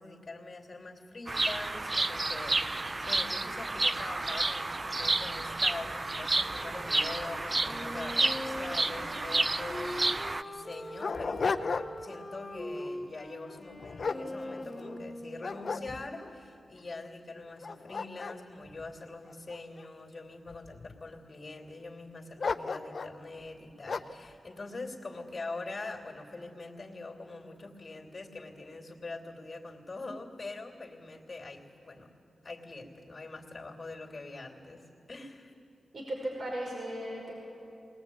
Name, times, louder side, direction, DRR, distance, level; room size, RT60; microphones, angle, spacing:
voice 1, 0.0-32.1 32.4-35.5, left 3 dB, 40° left, 1 dB, 3.0 m, -44 dB
Bird vocalization bird call bird song, 1.3-10.4, right 2 dB, 35° right, 0.6 m, -30 dB
Wind instrument woodwind instrument, 7.6-16.2, left 1 dB, 20° left, 2.2 m, -42 dB
Dog, 9.8-9.9 10.5-12.2 12.6-12.9 13.5-15.0 15.4-16.3 16.9-17.0 17.5-19.8 20.5-21.1 22.4-23.2 23.9-24.3, left 4 dB, 60° left, 0.6 m, -35 dB
voice 2, 35.9-37.4, right 1 dB, 60° right, -2 dB, 5.3 m, -36 dB
20.5 x 20.0 x 8.7 m, 2.7 s
cardioid pair, 55°, 0 cm